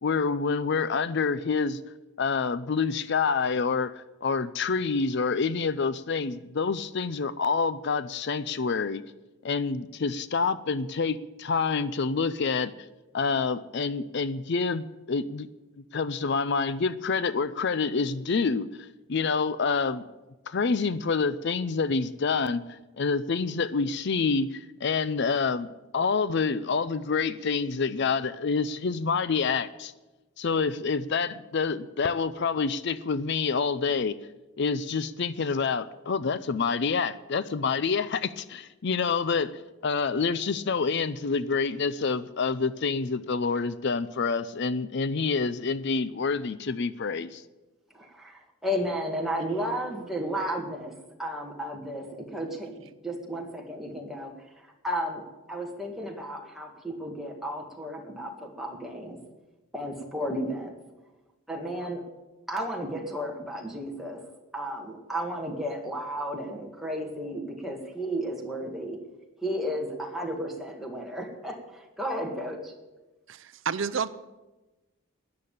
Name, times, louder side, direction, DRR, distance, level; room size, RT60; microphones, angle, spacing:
voice 1, 0.0-1.8 2.2-9.0 9.4-12.7 13.1-15.5 15.9-20.0 20.5-25.7 25.9-29.9 30.4-34.2 34.6-39.5 39.8-47.4, left 5 dB, 55° left, 16 dB, 0.5 m, -27 dB
voice 2, 47.9-50.9 51.2-52.7 53.0-54.3 54.6-59.2 59.7-60.7 61.5-62.0 62.5-64.2 64.5-69.0 69.4-72.7, equal, ahead, 0 dB, 1.9 m, -33 dB
voice 3, 73.3-74.1, right 6 dB, 60° right, 14 dB, 0.6 m, -30 dB
13.0 x 9.6 x 8.6 m, 1.1 s
head